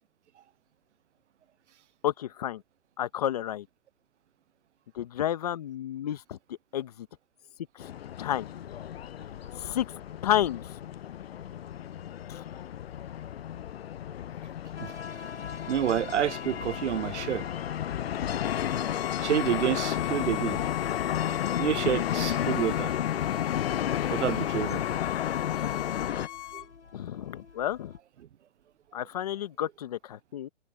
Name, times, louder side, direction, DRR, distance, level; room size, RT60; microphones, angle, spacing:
voice 1, 2.0-2.6 3.0-3.7 4.9-6.4 6.7-7.1 7.7-7.9 8.2-8.5 9.6-9.9 10.2-10.7 12.3-12.4 26.9-27.9 28.9-30.5, left 11 dB, 35° left, 1.0 m, -31 dB
sound 1, 7.8-26.3, left 10 dB, 60° left, 0.5 m, -32 dB
sound 2, 14.8-28.0, left 5 dB, 80° left, 4.3 m, -46 dB
voice 2, 15.7-17.4 19.2-20.6 21.6-22.9 24.1-24.8, right 10 dB, 75° right, 0.6 m, -28 dB
Bowed string instrument, 18.4-26.7, left 14 dB, 10° left, 2.1 m, -39 dB
hypercardioid pair, 165°, 35 cm